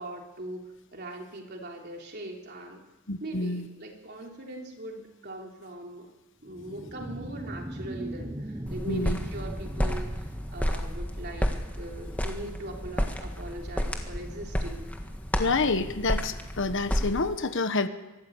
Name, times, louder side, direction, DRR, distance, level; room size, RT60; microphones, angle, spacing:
voice 1, 0.0-2.8 3.2-6.1 6.4-14.9, right 1 dB, 50° right, 1 dB, 3.4 m, -41 dB
voice 2, 3.1-3.6 8.9-9.2 15.4-17.9, left 3 dB, 55° left, 10 dB, 1.1 m, -28 dB
sound 1, 6.5-11.5, right 1 dB, 20° right, 1.1 m, -39 dB
concrete footsteps, 8.7-17.3, equal, 5° left, 1.6 m, -31 dB
24.0 x 13.5 x 8.2 m, 1.1 s
head